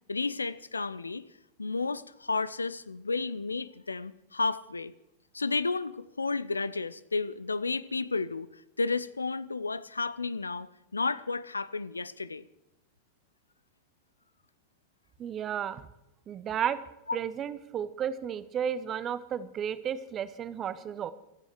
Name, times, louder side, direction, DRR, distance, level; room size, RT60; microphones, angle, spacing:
voice 1, 0.1-1.3 1.6-4.9 5.3-8.5 8.8-12.4, left 3 dB, 80° left, 18 dB, 0.6 m, -32 dB
voice 2, 15.2-15.8 16.3-16.8 17.1-21.1, right 9 dB, 30° right, 14 dB, 1.1 m, -33 dB
26.5 x 9.1 x 4.7 m, 0.89 s
figure-of-eight pair, 90°, 0 cm